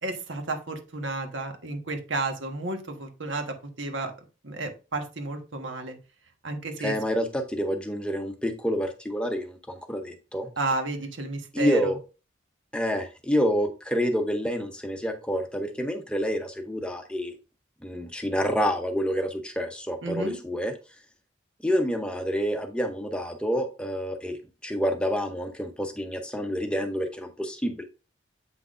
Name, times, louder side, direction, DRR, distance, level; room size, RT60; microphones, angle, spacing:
voice 1, 0.0-4.1 4.4-6.0 6.4-6.9 10.6-11.9 20.0-20.4, right 2 dB, 75° right, 5 dB, 1.3 m, -32 dB
voice 2, 6.8-10.5 11.5-12.0 12.7-17.4 17.8-20.7 21.6-27.8, equal, 5° left, 5 dB, 0.7 m, -28 dB
8.1 x 5.8 x 2.5 m, 0.32 s
head